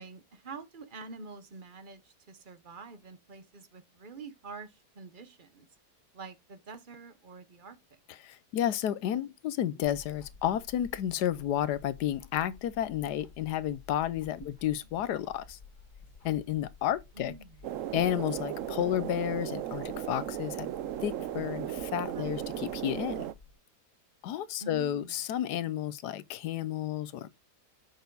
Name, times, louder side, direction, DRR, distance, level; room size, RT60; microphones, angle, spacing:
voice 1, 0.0-5.7 6.1-7.8 17.1-17.6 22.1-22.5 24.6-25.1, right 4 dB, 40° right, 0.9 m, -46 dB
voice 2, 8.2-15.6 16.2-17.3 17.9-20.7 21.0-23.3 24.2-27.4, left 11 dB, 75° left, 1.3 m, -31 dB
sound 1, 9.8-23.6, left 5 dB, 50° left, 2.5 m, -54 dB
sound 2, 17.6-23.3, right 12 dB, 65° right, 0.8 m, -36 dB
6.9 x 6.2 x 3.8 m
omnidirectional pair, 1.8 m